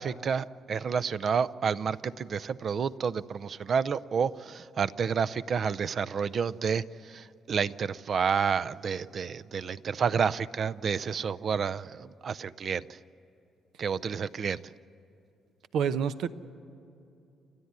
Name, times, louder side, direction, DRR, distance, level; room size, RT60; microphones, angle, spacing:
voice 1, 0.0-13.0 13.8-14.6, right 6 dB, 55° right, 14 dB, 0.5 m, -30 dB
voice 2, 15.7-16.3, right 7 dB, 80° right, 11 dB, 0.8 m, -27 dB
29.5 x 13.5 x 9.6 m, 2.7 s
cardioid pair, 90°, 0 cm